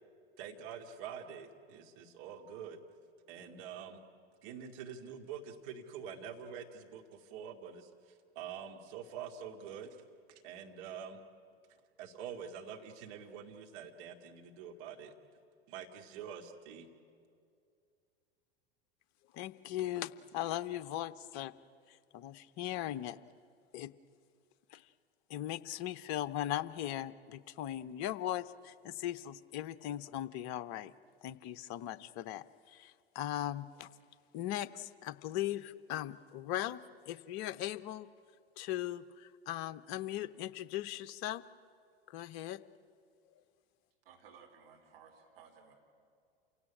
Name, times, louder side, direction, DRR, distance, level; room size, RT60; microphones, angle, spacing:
voice 1, 0.4-2.8 3.3-4.0 4.4-10.0 10.3-11.2 11.7-15.1 15.7-16.9, right 7 dB, 50° right, 4 dB, 2.4 m, -46 dB
voice 2, 19.3-21.5 21.9-23.2 23.7-23.9 24.7-24.8 25.3-30.9 31.2-33.9 34.3-36.8 37.1-38.1 38.6-41.4 42.1-42.6, left 13 dB, 45° left, 14 dB, 0.8 m, -39 dB
voice 3, 44.0-45.7, right 6 dB, 65° right, 2 dB, 4.2 m, -58 dB
28.0 x 17.0 x 9.9 m, 2.3 s
figure-of-eight pair, 85°, 31 cm